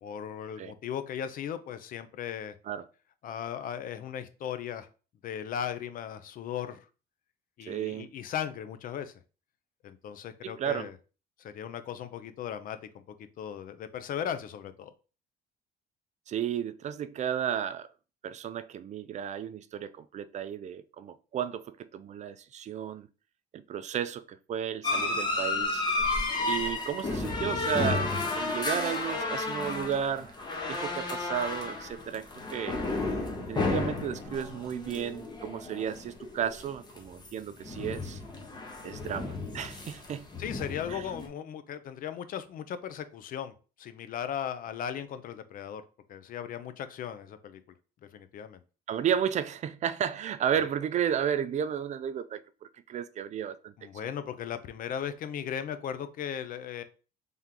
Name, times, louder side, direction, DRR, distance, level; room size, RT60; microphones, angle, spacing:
voice 1, 0.0-2.5 3.2-4.9 5.2-6.9 7.6-9.1 9.8-10.9 11.4-12.8 13.2-14.9 40.4-45.8 46.1-47.6 48.1-48.6 53.8-56.8, left 9 dB, 55° left, 0.5 m, -37 dB
voice 2, 7.7-8.1 10.4-10.9 16.3-17.9 18.2-23.1 23.5-25.8 26.5-30.4 30.7-32.8 33.5-38.2 38.8-40.3 40.9-41.0 48.9-53.7 54.0-54.1, right 9 dB, 45° right, 0.4 m, -33 dB
sound 1, 24.8-37.3 37.6-41.3, left 3 dB, 25° left, 1.0 m, -32 dB
3.5 x 2.8 x 3.7 m
cardioid pair, 110°, 17 cm